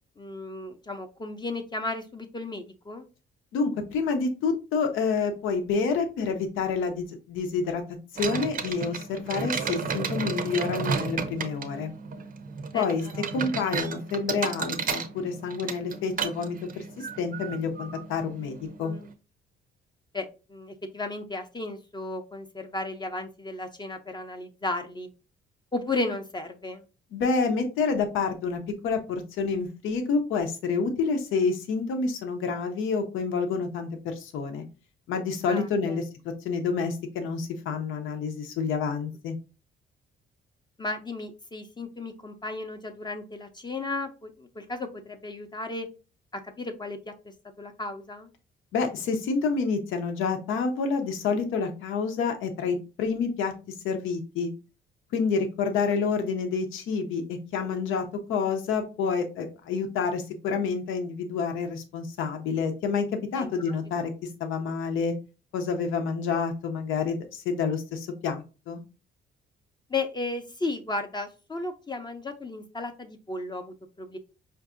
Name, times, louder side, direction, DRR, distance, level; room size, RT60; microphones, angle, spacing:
voice 1, 0.2-3.0 12.7-13.3 18.8-19.1 20.1-25.1 25.7-26.8 35.5-36.0 40.8-45.9 46.3-47.1 47.6-48.3 63.4-63.8 69.9-74.2, left 2 dB, 20° left, 5 dB, 0.5 m, -34 dB
voice 2, 3.5-7.8 8.1-11.9 12.7-13.0 13.3-18.9 27.1-34.6 35.1-36.0 36.4-39.4 48.7-53.5 53.8-54.5 55.1-58.0 58.3-64.1 64.4-65.1 65.5-68.8, left 5 dB, 90° left, 6 dB, 0.7 m, -28 dB
sound 1, 8.2-19.1, right 5 dB, 45° right, 0.5 m, -33 dB
4.6 x 2.6 x 2.5 m, 0.32 s
cardioid pair, 90°, 20 cm